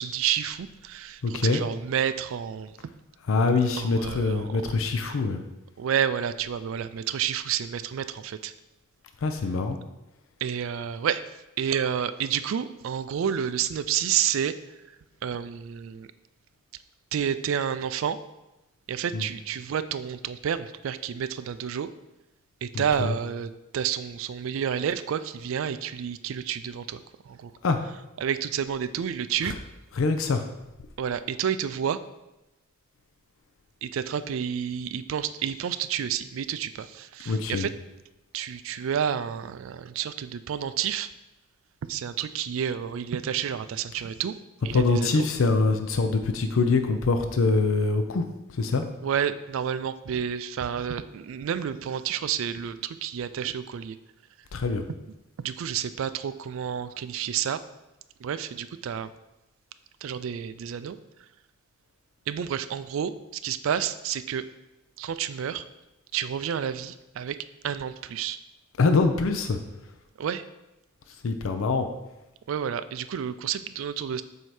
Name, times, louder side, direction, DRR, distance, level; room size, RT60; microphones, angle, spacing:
voice 1, 0.0-2.8 3.8-4.6 5.1-5.2 5.8-8.5 10.4-11.2 11.6-14.5 14.9-16.1 17.1-18.2 18.9-21.9 22.6-27.5 28.2-29.5 31.0-32.0 33.8-37.7 38.3-41.1 41.8-44.4 44.6-45.3 49.0-54.0 55.4-57.6 58.2-59.1 60.0-61.3 62.3-64.4 65.0-65.7 66.1-67.4 67.6-68.4 70.2-70.5 72.5-74.2, right 8 dB, 65° right, 13 dB, 0.3 m, -30 dB
voice 2, 1.2-1.6 3.3-5.4 9.2-9.8 19.1-19.2 22.7-23.1 27.6-27.8 29.5-29.6 30.0-30.4 37.3-37.7 44.7-48.2 48.5-48.8 54.5-54.8 68.8-69.6 71.2-71.9, left 3 dB, 65° left, 7 dB, 0.5 m, -24 dB
7.6 x 2.8 x 4.7 m, 0.97 s
head